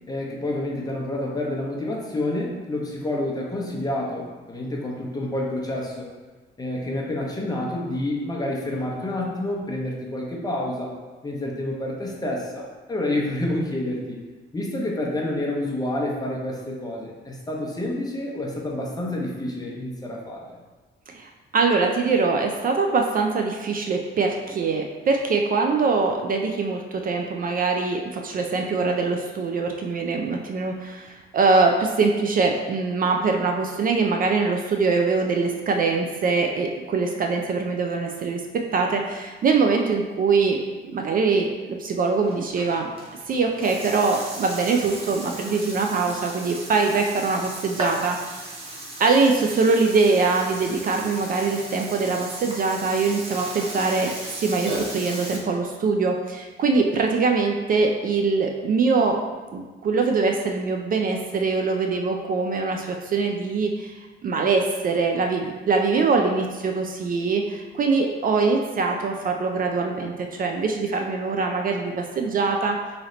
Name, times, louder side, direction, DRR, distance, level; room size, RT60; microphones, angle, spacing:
voice 1, 0.1-6.1 6.6-10.9 11.2-14.2 14.5-20.6, left 1 dB, 20° left, -2 dB, 0.7 m, -28 dB
voice 2, 21.1-40.6 40.9-42.9 43.3-48.2 49.0-59.2 59.5-63.9 64.2-72.8, right 4 dB, 45° right, 3 dB, 0.4 m, -23 dB
Burping eructation, 42.2-55.4, right 1 dB, 30° right, 0.8 m, -36 dB
3.1 x 2.7 x 3.8 m, 1.3 s
cardioid pair, 90°, 20 cm